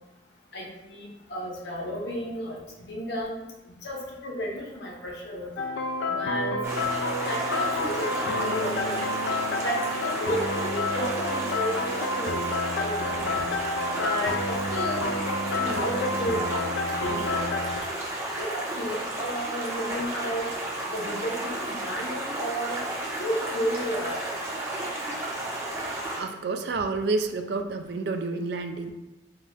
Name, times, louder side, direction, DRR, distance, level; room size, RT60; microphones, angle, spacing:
voice 1, 0.5-3.4 3.7-5.5 6.1-6.6 7.3-9.1 9.6-13.5 13.9-15.0 15.5-16.5 16.8-17.4 18.4-20.5 20.9-22.8 23.2-24.3, equal, 65° left, -2 dB, 0.9 m, -33 dB
sound 1, 5.6-17.8, left 2 dB, 80° left, 0.4 m, -29 dB
Stream, 6.6-26.2, right 1 dB, 15° right, 0.6 m, -32 dB
voice 2, 26.2-28.9, right 3 dB, 60° right, 7 dB, 0.3 m, -29 dB
3.7 x 2.4 x 4.2 m, 1.1 s
head